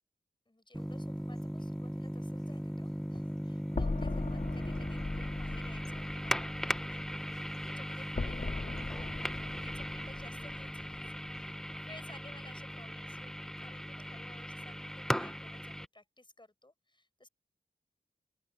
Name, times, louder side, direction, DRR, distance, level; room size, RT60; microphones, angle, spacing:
voice 1, 0.5-17.3, left 2 dB, 25° left, 6.3 m, -57 dB
sound 1, 0.7-15.9, equal, 5° left, 1.0 m, -38 dB
sound 2, 3.7-11.7, left 3 dB, 45° left, 1.9 m, -40 dB
open air
wide cardioid pair, 65°, 18 cm